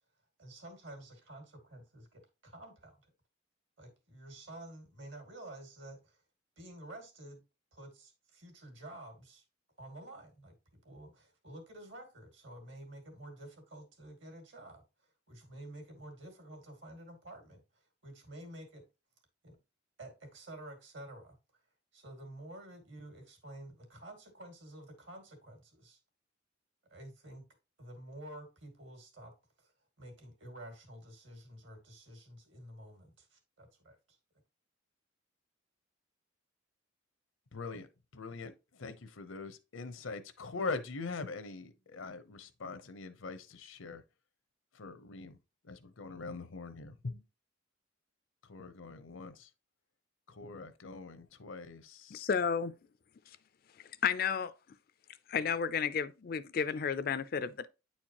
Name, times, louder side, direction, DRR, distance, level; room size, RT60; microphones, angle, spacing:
voice 1, 0.4-3.1 3.8-6.2 6.6-7.4 7.7-9.4 9.8-18.8 19.4-19.6 20.0-21.4 21.9-26.0 26.9-27.4 27.8-29.3 29.6-29.7 30.0-34.0, right 1 dB, 65° right, 2.2 m, -50 dB
voice 2, 37.5-37.9 38.1-38.5 38.8-44.0 44.8-45.4 45.7-47.2 48.5-49.5 50.4-52.2, left 4 dB, 80° left, 0.8 m, -42 dB
voice 3, 52.1-52.7 54.0-54.5 55.3-57.7, left 6 dB, 45° left, 0.4 m, -32 dB
9.2 x 4.4 x 2.9 m
head